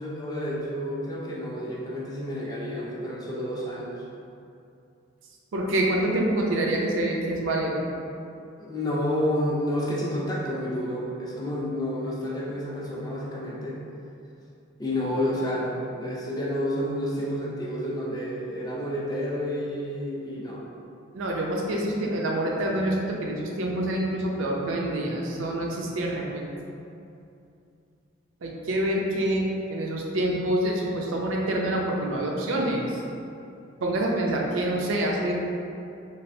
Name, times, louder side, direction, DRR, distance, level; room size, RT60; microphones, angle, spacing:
voice 1, 0.0-3.9 8.6-13.8 14.8-20.6, left 1 dB, 20° left, -5 dB, 0.4 m, -30 dB
voice 2, 5.5-7.8 21.1-26.5 28.4-29.4 29.7-32.9 33.8-35.3, right 1 dB, 80° right, -1 dB, 0.4 m, -26 dB
3.2 x 2.4 x 2.6 m, 2.6 s
head